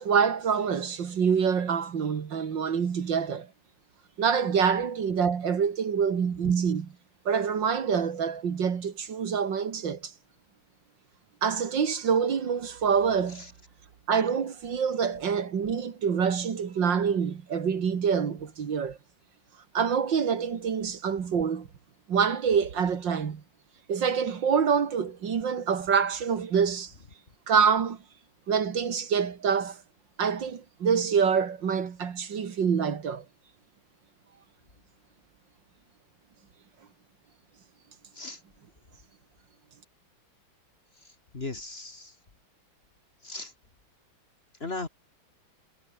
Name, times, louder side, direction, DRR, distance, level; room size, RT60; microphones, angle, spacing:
voice 1, 0.0-3.5 4.2-6.9 7.3-10.1 11.4-13.5 14.1-19.0 19.7-21.7 22.1-23.4 23.9-26.9 27.5-28.0 28.5-29.8 30.2-33.2, right 6 dB, 65° right, 2.5 m, -26 dB
voice 2, 41.3-42.1 43.2-43.5 44.6-44.9, left 3 dB, 30° left, 2.0 m, -36 dB
omnidirectional pair, 2.2 m